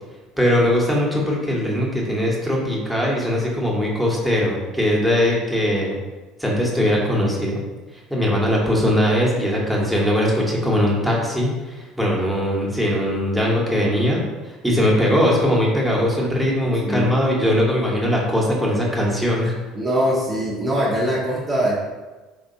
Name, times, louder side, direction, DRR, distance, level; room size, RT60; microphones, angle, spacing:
voice 1, 0.4-6.0 6.4-7.6 8.1-19.5, equal, ahead, -4 dB, 1.1 m, -20 dB
voice 2, 16.8-17.2 19.7-21.8, equal, 25° right, -5 dB, 0.8 m, -22 dB
4.5 x 3.3 x 2.7 m, 1.2 s
figure-of-eight pair, 60°, 0 cm